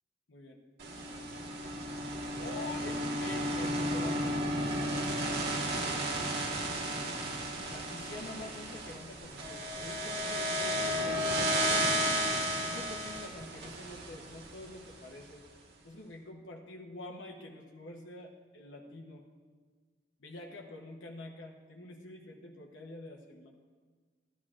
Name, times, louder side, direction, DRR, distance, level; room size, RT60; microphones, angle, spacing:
voice 1, 0.3-0.6 2.4-4.8 7.7-12.2 12.6-15.5 15.8-19.3 20.2-23.5, left 2 dB, 85° left, 0 dB, 1.0 m, -47 dB
sound 1, 0.8-15.0, equal, 60° right, 1.5 m, -33 dB
14.0 x 12.5 x 2.5 m, 1.5 s
head